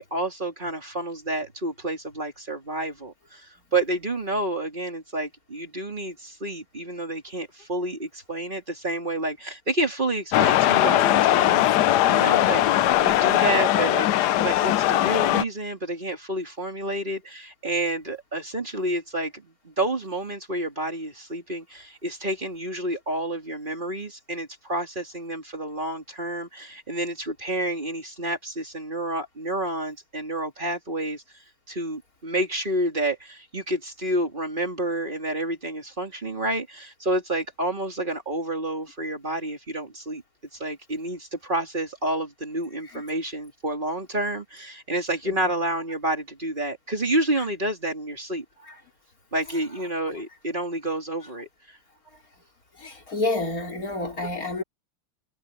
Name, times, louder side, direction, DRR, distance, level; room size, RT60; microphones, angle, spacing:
voice 1, 0.0-11.7 12.1-31.2 31.7-40.2 40.5-48.4 49.3-51.8, right 1 dB, 20° right, 3.2 m, -29 dB
sound 1, 10.3-15.4, left 14 dB, 85° left, 0.9 m, -20 dB
voice 2, 52.8-54.6, left 2 dB, 40° left, 4.5 m, -28 dB
omnidirectional pair, 2.4 m